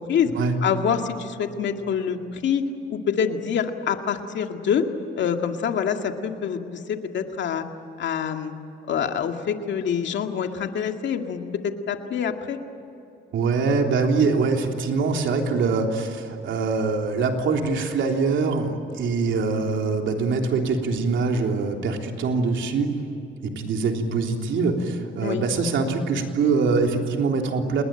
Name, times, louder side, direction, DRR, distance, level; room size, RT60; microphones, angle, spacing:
voice 1, 0.0-0.3 0.6-4.9 5.2-7.6 8.0-8.5 8.9-12.6 25.2-25.4, left 7 dB, 65° left, 5 dB, 2.2 m, -26 dB
voice 2, 13.3-22.9 23.4-27.8, right 4 dB, 75° right, 3 dB, 3.4 m, -23 dB
28.5 x 20.5 x 9.0 m, 2.8 s
cardioid pair, 90°, 20 cm